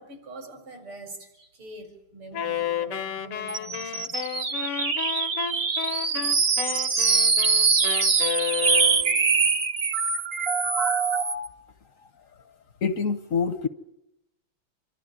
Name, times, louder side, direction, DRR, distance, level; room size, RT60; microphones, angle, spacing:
voice 1, 0.0-4.2, right 2 dB, 70° right, 5 dB, 5.2 m, -44 dB
Wind instrument woodwind instrument, 2.3-9.3, left 9 dB, 90° left, 2.0 m, -32 dB
sound 1, 3.5-11.5, right 4 dB, 40° right, 1.0 m, -23 dB
voice 2, 12.8-13.7, left 5 dB, 55° left, 11 dB, 1.0 m, -25 dB
27.0 x 12.5 x 9.8 m, 0.86 s
omnidirectional pair, 2.4 m